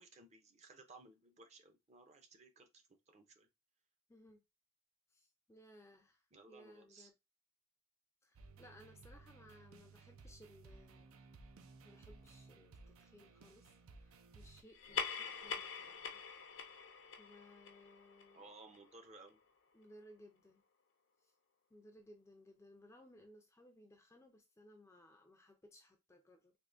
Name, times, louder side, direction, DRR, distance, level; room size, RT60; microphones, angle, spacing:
voice 1, 0.0-3.5 6.3-7.1 18.3-19.4, right 3 dB, 30° right, 0.6 m, -59 dB
voice 2, 4.1-4.4 5.1-7.1 8.2-11.1 11.8-16.2 17.2-18.5 19.7-20.6 21.2-21.3 21.7-26.5, left 1 dB, 15° left, 0.4 m, -62 dB
sound 1, 8.4-14.6, right 3 dB, 80° right, 0.5 m, -59 dB
sound 2, 14.7-19.6, left 6 dB, 60° left, 0.5 m, -45 dB
3.5 x 2.6 x 2.5 m
head